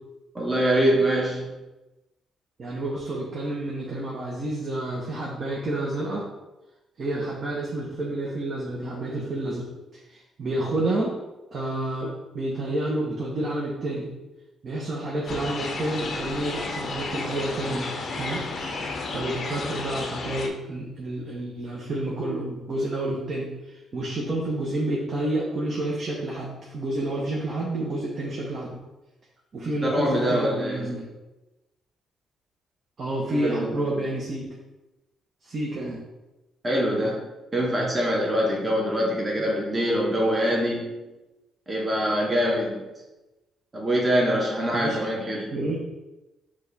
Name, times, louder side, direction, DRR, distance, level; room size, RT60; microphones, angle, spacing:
voice 1, 0.3-1.5 29.6-30.9 33.3-33.9 36.6-37.2 37.5-41.0 41.7-42.8 43.7-45.5, equal, 20° right, -3 dB, 1.0 m, -24 dB
voice 2, 2.6-6.3 7.0-9.7 10.1-11.2 11.5-14.1 14.6-17.9 18.2-18.4 18.7-18.8 19.1-28.7 29.5-31.1 33.0-34.5 35.4-36.0 39.4-39.5 44.7-45.0 45.5-45.8, right 1 dB, 45° right, -4 dB, 0.8 m, -29 dB
sound 1, 15.3-20.5, left 3 dB, 50° left, 0.6 m, -32 dB
4.6 x 2.3 x 4.0 m, 1.0 s
cardioid pair, 90°, 0 cm